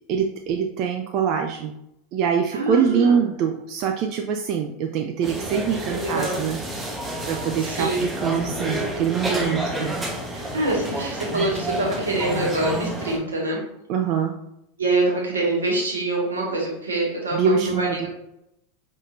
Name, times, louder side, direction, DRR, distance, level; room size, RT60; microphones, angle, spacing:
voice 1, 0.1-1.8 2.1-6.6 7.3-10.0 13.9-14.3 17.3-18.1, right 7 dB, 45° right, 4 dB, 0.4 m, -24 dB
voice 2, 2.5-3.2 5.9-6.4 7.6-8.0 10.3-13.6 14.8-18.1, right 2 dB, 80° right, -3 dB, 1.6 m, -25 dB
sound 1, 5.2-13.2, right 1 dB, 15° right, 1.1 m, -29 dB
5.4 x 3.6 x 2.6 m, 0.82 s
figure-of-eight pair, 85°, 0 cm